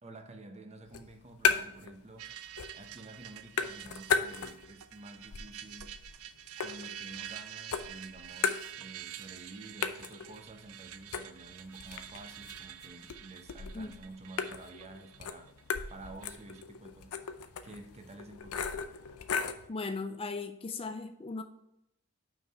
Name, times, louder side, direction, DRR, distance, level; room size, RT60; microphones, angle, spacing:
voice 1, 0.0-2.3 2.7-6.0 6.6-15.5 15.9-17.2 17.6-18.8, right 2 dB, 30° right, 5 dB, 0.8 m, -50 dB
sound 1, 0.9-1.9 2.2-2.9 3.2-4.8 5.2-7.4 7.7-9.2 9.4-9.5 9.8-19.7, left 6 dB, 90° left, 0.6 m, -36 dB
sound 2, 2.2-16.6, right 11 dB, 80° right, 0.5 m, -48 dB
voice 2, 19.7-21.4, left 3 dB, 25° left, 8 dB, 0.4 m, -37 dB
5.8 x 4.7 x 5.5 m, 0.81 s
head